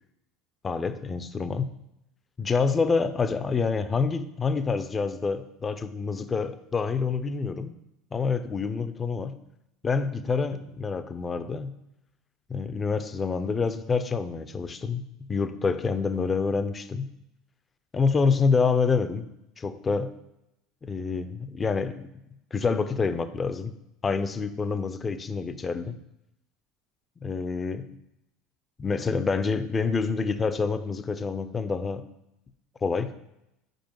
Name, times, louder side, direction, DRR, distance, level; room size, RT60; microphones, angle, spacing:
voice 1, 0.6-1.7 2.4-7.7 8.1-9.4 9.8-11.7 12.5-15.0 15.3-17.1 17.9-19.3 19.6-20.2 20.8-22.1 22.5-23.7 24.0-26.0 27.2-27.9 28.8-32.0 32.8-33.1, left 5 dB, 25° left, 11 dB, 0.5 m, -27 dB
5.4 x 4.4 x 4.5 m, 0.85 s
hypercardioid pair, 90°, 0 cm